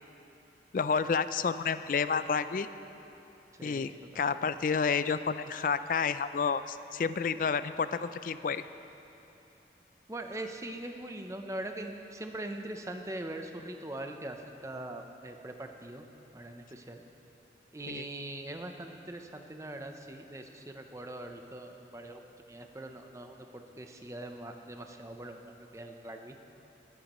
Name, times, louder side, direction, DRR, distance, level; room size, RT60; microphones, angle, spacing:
voice 1, 0.7-2.7 3.6-8.6 17.9-18.0, left 5 dB, 50° left, 13 dB, 0.3 m, -30 dB
voice 2, 3.5-4.0 10.1-16.1 16.3-17.0 17.7-22.2 22.5-26.3, right 1 dB, 15° right, 5 dB, 0.6 m, -42 dB
20.0 x 11.5 x 3.1 m, 3.0 s
head